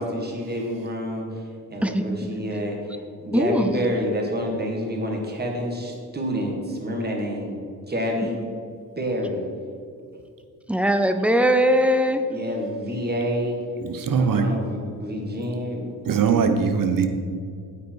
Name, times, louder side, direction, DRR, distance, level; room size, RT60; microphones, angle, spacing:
voice 1, 0.0-7.6 7.9-8.4 9.0-9.4 12.3-13.6 14.2-15.9, equal, 25° right, 1 dB, 1.8 m, -28 dB
voice 2, 3.3-3.7 10.7-12.2, equal, 5° right, 8 dB, 0.5 m, -20 dB
voice 3, 13.8-14.5 16.1-17.1, right 6 dB, 60° right, 7 dB, 1.0 m, -21 dB
8.7 x 8.5 x 4.6 m, 2.3 s
cardioid pair, 120°, 38 cm